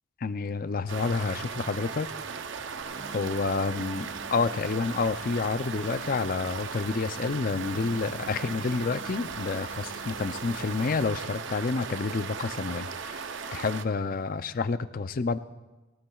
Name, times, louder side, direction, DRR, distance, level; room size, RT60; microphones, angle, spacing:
voice 1, 0.2-2.1 3.1-15.4, left 4 dB, 40° left, 13 dB, 0.4 m, -29 dB
sound 1, 0.8-6.4, equal, ahead, 1.2 m, -57 dB
sound 2, 0.9-13.8, right 5 dB, 55° right, 0.6 m, -37 dB
sound 3, 2.8-11.1, right 2 dB, 80° right, 3.0 m, -47 dB
20.5 x 19.0 x 2.4 m, 1.1 s
head